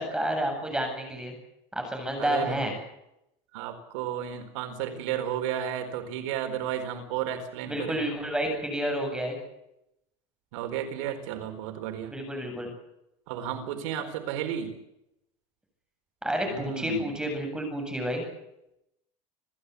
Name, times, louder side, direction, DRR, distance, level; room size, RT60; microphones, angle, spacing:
voice 1, 0.0-1.3 1.7-2.7 7.7-9.3 12.1-12.7 16.2-18.3, equal, 5° right, 4 dB, 7.8 m, -30 dB
voice 2, 2.2-2.6 3.5-8.0 10.5-12.1 13.3-14.7 16.5-17.1, right 10 dB, 85° right, 6 dB, 4.4 m, -33 dB
28.0 x 15.0 x 8.4 m, 0.84 s
cardioid pair, 150°, 16 cm